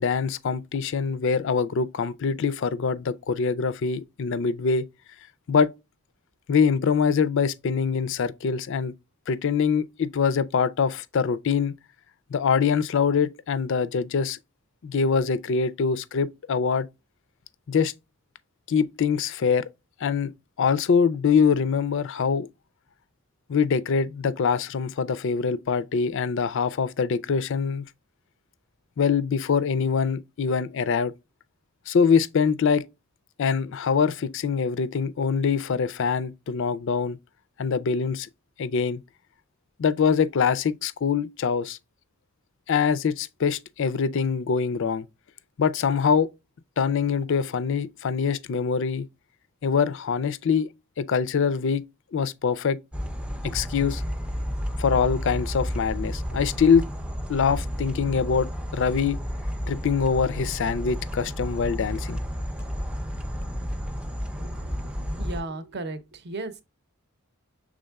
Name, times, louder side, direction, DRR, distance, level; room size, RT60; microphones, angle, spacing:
voice 1, 0.0-4.9 5.5-5.7 6.5-8.9 9.3-11.7 12.3-14.4 14.8-16.9 17.7-17.9 18.7-19.6 20.0-20.3 20.6-22.5 23.5-27.8 29.0-31.1 31.9-32.8 33.4-37.2 37.6-38.3 38.6-39.0 39.8-41.8 42.7-45.1 45.6-46.3 46.8-49.1 49.6-50.7 51.0-51.8 52.1-52.8 53.4-54.0 54.8-56.8 57.3-59.2 59.7-62.2, left 6 dB, 55° left, 0.4 m, -24 dB
sound 1, 52.9-65.4, equal, 5° right, 0.5 m, -31 dB
voice 2, 64.4-66.6, right 2 dB, 50° right, 0.7 m, -36 dB
6.3 x 3.6 x 2.3 m
head